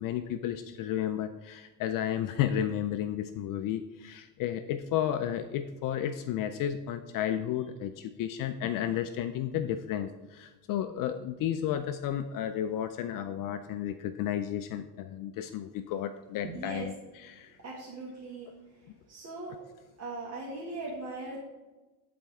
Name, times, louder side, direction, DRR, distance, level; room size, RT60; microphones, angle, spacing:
voice 1, 0.0-17.6 18.9-19.0, left 10 dB, 50° left, 9 dB, 0.5 m, -32 dB
voice 2, 16.5-16.9 17.6-18.5 19.1-19.6 20.0-21.4, right 2 dB, 35° right, -5 dB, 1.8 m, -39 dB
11.5 x 4.3 x 3.5 m, 1.1 s
cardioid pair, 120°, 44 cm